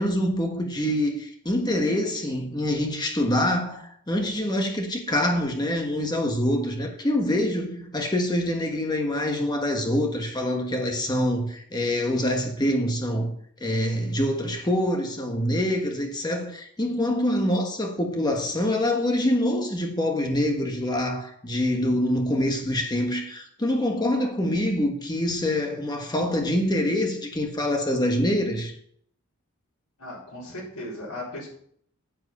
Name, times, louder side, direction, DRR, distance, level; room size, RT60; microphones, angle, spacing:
voice 1, 0.0-13.3 13.6-28.7, left 1 dB, 20° left, 1.3 m, -25 dB
voice 2, 30.0-31.5, left 1 dB, 90° left, 4.6 m, -37 dB
10.0 x 7.7 x 5.5 m
head